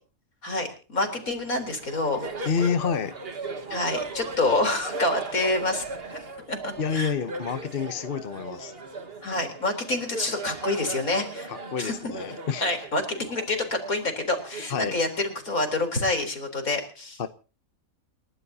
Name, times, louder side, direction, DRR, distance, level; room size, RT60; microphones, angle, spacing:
voice 1, 0.4-2.5 3.7-5.8 6.5-7.1 9.2-11.5 11.8-12.1 12.6-17.2, left 2 dB, 70° left, 5 dB, 4.3 m, -27 dB
Laughter, 1.0-16.0, right 3 dB, 40° right, 1.9 m, -38 dB
voice 2, 2.5-3.2 6.8-8.7 11.5-12.7 14.7-15.0 17.2-17.3, left 6 dB, 45° left, 11 dB, 1.0 m, -28 dB
29.5 x 12.5 x 2.9 m, 0.36 s
omnidirectional pair, 1.5 m